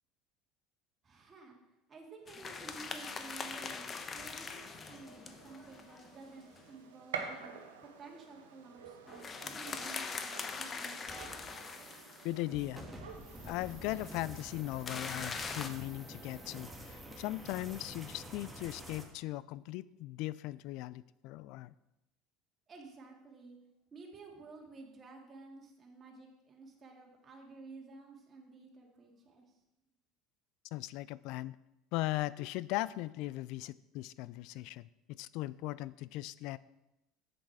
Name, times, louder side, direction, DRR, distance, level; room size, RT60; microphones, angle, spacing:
voice 1, 1.0-1.6 1.9-7.5 7.8-11.3 22.7-23.6 23.9-29.4, right 3 dB, 35° right, 0 dB, 2.4 m, -53 dB
sound 1, 2.3-6.6 9.1-12.4 14.9-15.7, left 5 dB, 30° left, 1.0 m, -42 dB
Gunshot gunfire, 4.4-14.4, right 6 dB, 85° right, 1.1 m, -49 dB
sound 2, 11.1-19.0, equal, 10° right, 2.1 m, -49 dB
voice 2, 12.2-12.9 13.4-21.7 30.7-31.6 31.9-36.6, left 17 dB, 65° left, 19 dB, 0.3 m, -38 dB
7.8 x 7.1 x 4.7 m, 0.91 s
hypercardioid pair, 80°, 0 cm